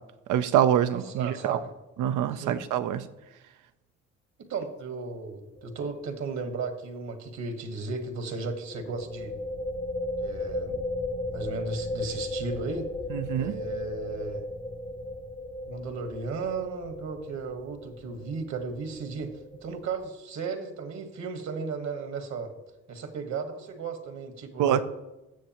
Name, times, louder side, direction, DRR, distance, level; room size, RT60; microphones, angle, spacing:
voice 1, 0.3-1.6 2.0-3.1 13.1-13.5 24.6-24.8, right 10 dB, 85° right, 11 dB, 0.6 m, -25 dB
voice 2, 1.1-1.7 2.3-2.6 4.4-9.3 10.2-10.8 11.3-12.9 13.4-14.4 15.6-19.3 19.6-22.5 22.9-24.8, right 4 dB, 65° right, 7 dB, 1.4 m, -35 dB
sound 1, 5.6-5.9 6.1-6.2 8.7-20.1, left 1 dB, 20° left, 0.7 m, -36 dB
16.5 x 6.4 x 3.0 m, 1.0 s
cardioid pair, 90°, 30 cm